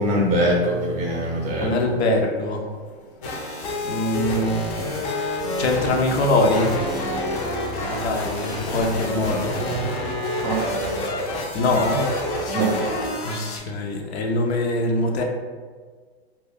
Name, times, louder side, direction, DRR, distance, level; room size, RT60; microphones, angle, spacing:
voice 1, 0.0-1.8 10.4-10.6 12.5-12.7, right 1 dB, 20° right, -2 dB, 0.5 m, -22 dB
voice 2, 1.6-2.6 3.9-4.5 5.6-6.7 7.9-9.5 11.5-12.0 13.2-13.3 13.7-15.2, left 2 dB, 75° left, 1 dB, 0.6 m, -22 dB
sound 1, 3.2-13.6, left 1 dB, 35° left, 0.5 m, -28 dB
2.3 x 2.2 x 3.4 m, 1.5 s
hypercardioid pair, 135°, 33 cm